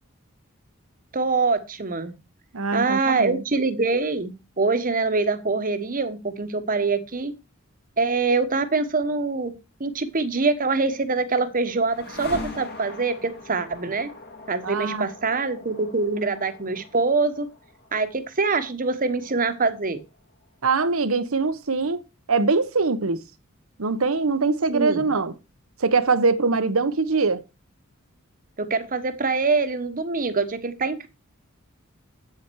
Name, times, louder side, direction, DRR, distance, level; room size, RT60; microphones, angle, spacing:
voice 1, 1.1-2.1 2.7-7.3 8.0-9.5 9.8-14.1 14.5-17.5 17.9-20.0 24.7-25.1 28.6-31.1, right 3 dB, 40° right, 1.2 m, -24 dB
voice 2, 2.5-3.4 14.6-15.1 20.6-23.2 23.8-25.3 25.8-27.4, right 4 dB, 80° right, 1.0 m, -23 dB
sound 1, 10.9-20.8, left 2 dB, 50° left, 2.5 m, -42 dB
8.8 x 7.7 x 4.7 m
head